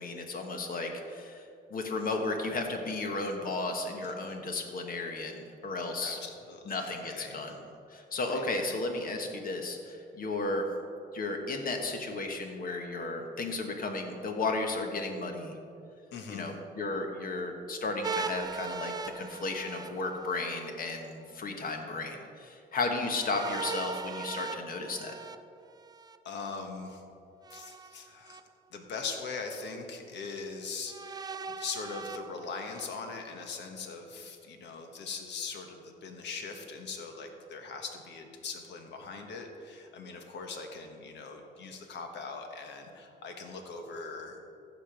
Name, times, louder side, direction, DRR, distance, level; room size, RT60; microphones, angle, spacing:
voice 1, 0.0-6.2 6.7-7.5 7.9-10.7 11.1-15.6 16.3-25.1, left 3 dB, 50° left, 4 dB, 1.4 m, -34 dB
voice 2, 6.0-7.4 8.3-8.8 16.1-16.5 26.2-27.0 27.5-28.4 28.7-44.5, left 4 dB, 70° left, 4 dB, 1.4 m, -41 dB
sound 1, 18.0-20.7 23.1-26.2 27.4-28.4 29.1-29.2 30.9-32.9, right 4 dB, 20° right, 0.3 m, -39 dB
15.0 x 5.3 x 5.2 m, 2.5 s
cardioid pair, 110°, 19 cm